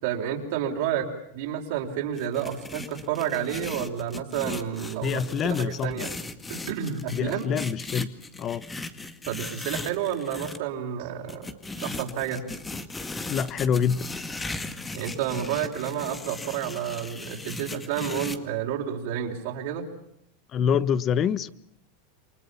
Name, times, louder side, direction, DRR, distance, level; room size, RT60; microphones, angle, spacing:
voice 1, 0.0-6.1 6.5-7.5 9.3-11.5 11.8-12.5 14.9-19.8, right 9 dB, 65° right, 4.8 m, -30 dB
sound 1, 2.1-10.6 11.3-18.4, left 3 dB, 10° left, 2.1 m, -37 dB
voice 2, 5.0-6.0 7.1-8.1 8.4-8.6 13.3-14.1 20.5-21.5, left 7 dB, 35° left, 1.2 m, -25 dB
29.0 x 24.5 x 7.2 m
supercardioid pair, 135°, 0 cm